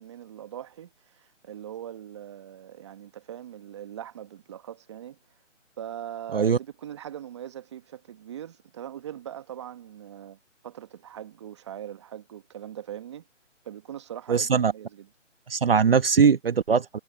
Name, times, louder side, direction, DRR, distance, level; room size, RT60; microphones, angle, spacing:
voice 1, 0.0-5.2 5.8-10.4 10.6-13.2 13.6-15.1, right 10 dB, 20° right, 1.5 m, -41 dB
voice 2, 14.3-14.7 15.5-17.0, right 6 dB, 45° right, 1.2 m, -21 dB
hypercardioid pair, 165°, 38 cm